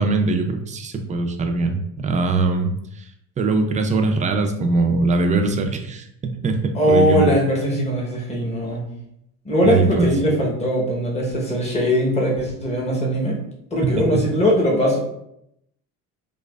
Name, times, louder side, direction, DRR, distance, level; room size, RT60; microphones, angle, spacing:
voice 1, 0.0-2.7 3.4-7.4 9.6-10.1 13.8-14.2, right 3 dB, 25° right, 6 dB, 0.3 m, -21 dB
voice 2, 6.7-8.9 9.4-13.4 13.7-15.0, equal, 20° left, -3 dB, 0.9 m, -20 dB
4.6 x 2.4 x 2.3 m, 0.78 s
cardioid pair, 130°, 34 cm